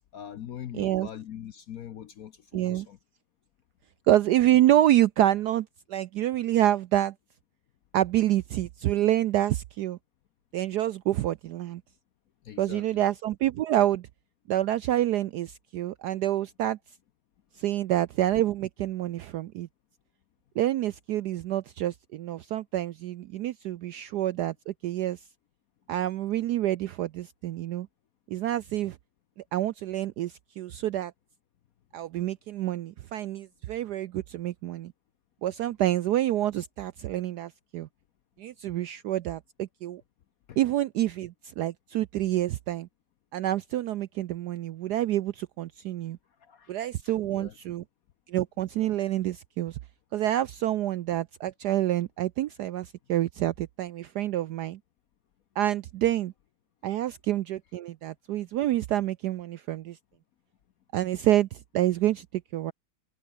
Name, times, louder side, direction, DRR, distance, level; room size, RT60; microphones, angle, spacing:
voice 1, 0.1-3.0 12.4-13.0 40.5-40.6 46.4-46.8 47.0-47.5, left 10 dB, 60° left, 0.9 m, -42 dB
voice 2, 0.7-1.1 2.5-2.9 4.1-7.1 7.9-10.0 10.5-11.8 12.6-14.1 14.5-16.8 17.6-19.7 20.6-25.2 25.9-27.9 28.3-29.0 29.5-31.1 31.9-34.9 35.4-37.9 38.4-40.0 40.6-42.9 43.3-46.2 46.7-47.8 48.3-49.8 50.1-54.8 55.6-56.3 56.8-60.0 60.9-62.7, right 13 dB, 75° right, 0.9 m, -27 dB
omnidirectional pair, 2.2 m